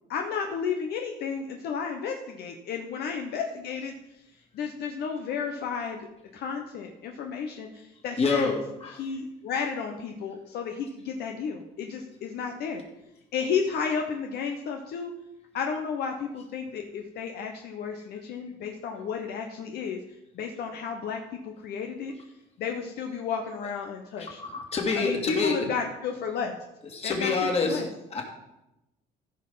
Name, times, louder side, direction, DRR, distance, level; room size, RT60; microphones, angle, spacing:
voice 1, 0.1-3.9 4.5-8.6 9.0-12.8 13.3-15.1 15.5-20.0 20.3-22.1 22.6-24.4 24.9-26.5 27.0-27.9, left 6 dB, 70° left, 3 dB, 1.1 m, -32 dB
voice 2, 8.2-9.0 17.8-17.9 24.2-25.7 26.9-28.2, left 4 dB, 35° left, 2 dB, 2.6 m, -28 dB
14.5 x 5.5 x 5.6 m, 0.91 s
cardioid pair, 110°, 17 cm